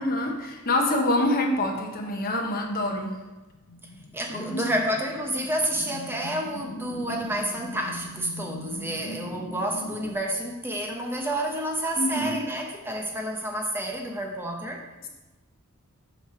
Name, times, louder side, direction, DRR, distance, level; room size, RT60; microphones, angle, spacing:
voice 1, 0.0-3.1 4.3-4.6 12.0-12.4, left 1 dB, 40° left, 1 dB, 1.0 m, -26 dB
sound 1, 3.4-10.1, left 1 dB, 75° left, 0.7 m, -41 dB
voice 2, 4.1-14.9, right 1 dB, 10° right, 2 dB, 0.7 m, -29 dB
7.9 x 3.1 x 5.6 m, 1.1 s
head